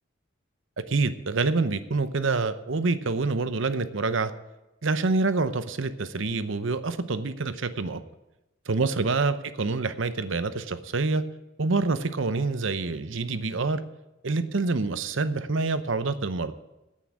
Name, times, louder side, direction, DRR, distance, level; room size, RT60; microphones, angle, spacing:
voice 1, 0.8-4.3 4.8-8.0 8.7-11.2 11.6-13.8 14.2-16.5, right 3 dB, 65° right, 12 dB, 0.8 m, -26 dB
9.7 x 8.5 x 8.5 m, 0.98 s
head